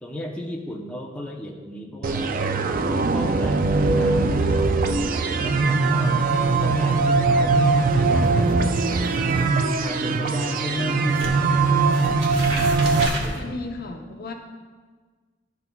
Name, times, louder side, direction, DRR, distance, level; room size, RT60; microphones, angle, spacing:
voice 1, 0.0-2.6 3.1-4.8 5.3-8.8 9.6-12.1 13.2-13.5, left 1 dB, 5° left, -2 dB, 0.7 m, -35 dB
sound 1, 2.0-13.1, right 3 dB, 45° right, 0.4 m, -21 dB
sound 2, 5.9-10.8 11.1-13.4, right 1 dB, 70° right, 1.3 m, -35 dB
voice 2, 13.4-14.3, left 2 dB, 50° left, 3 dB, 0.7 m, -34 dB
12.0 x 5.8 x 2.3 m, 1.4 s
head